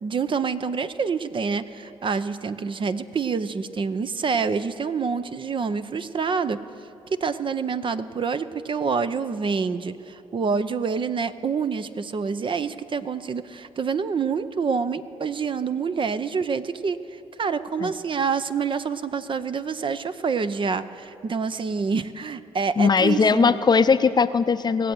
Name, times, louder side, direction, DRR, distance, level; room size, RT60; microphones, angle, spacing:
voice 1, 0.0-6.6 7.1-23.6, right 5 dB, 40° right, 12 dB, 0.7 m, -27 dB
voice 2, 22.8-24.9, left 5 dB, 35° left, 12 dB, 0.6 m, -19 dB
18.5 x 7.6 x 7.8 m, 2.6 s
supercardioid pair, 55°, 13 cm